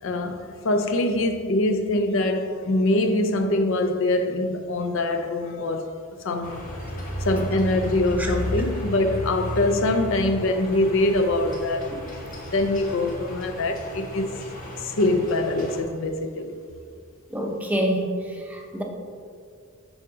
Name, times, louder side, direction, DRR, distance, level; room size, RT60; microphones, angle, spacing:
voice 1, 0.0-5.9 6.2-6.7 7.2-12.0 12.5-14.4 14.8-16.6, left 2 dB, 60° left, 0.5 m, -24 dB
sound 1, 6.4-15.8, equal, 40° left, 1.2 m, -33 dB
voice 2, 17.3-18.8, equal, 5° right, 0.6 m, -27 dB
7.1 x 4.9 x 3.7 m
head